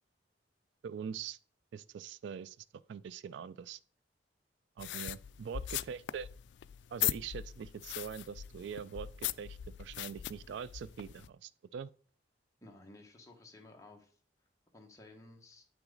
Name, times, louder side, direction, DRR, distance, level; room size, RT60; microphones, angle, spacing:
voice 1, 0.8-1.4 1.7-3.8 4.8-6.3 6.9-11.9, right 7 dB, 70° right, 0.3 m, -43 dB
sound 1, 4.8-11.3, left 13 dB, 70° left, 0.3 m, -40 dB
voice 2, 12.6-14.2 14.7-15.6, left 2 dB, 15° left, 1.3 m, -55 dB
9.0 x 5.9 x 3.9 m
head